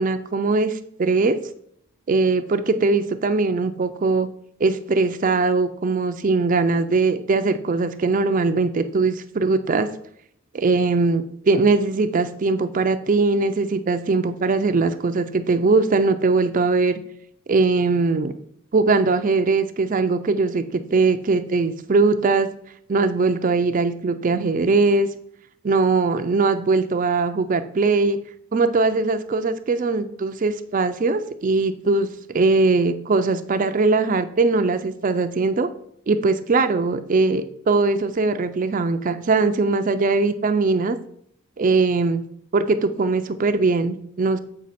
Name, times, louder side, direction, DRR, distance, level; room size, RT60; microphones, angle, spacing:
voice 1, 0.0-1.4 2.1-4.3 4.6-9.9 10.5-17.0 17.5-18.3 18.7-22.5 22.9-25.1 25.6-28.2 28.5-35.7 36.1-41.0 41.6-42.2 42.5-44.4, right 3 dB, 35° right, 9 dB, 0.4 m, -20 dB
7.5 x 5.1 x 4.1 m, 0.68 s
head